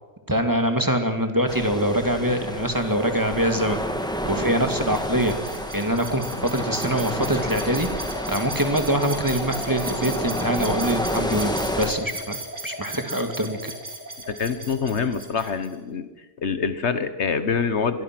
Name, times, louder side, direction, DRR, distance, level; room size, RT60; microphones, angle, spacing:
voice 1, 0.3-3.8 4.2-5.3 5.7-12.4 12.6-13.7, equal, 15° right, 6 dB, 2.1 m, -24 dB
sound 1, 1.5-11.9, equal, 5° left, 2.1 m, -30 dB
sound 2, 4.7-15.7, right 2 dB, 85° right, 4.0 m, -36 dB
voice 2, 14.3-16.1 16.4-18.0, left 5 dB, 75° left, 12 dB, 1.5 m, -25 dB
26.5 x 21.5 x 6.1 m, 1.2 s
omnidirectional pair, 1.2 m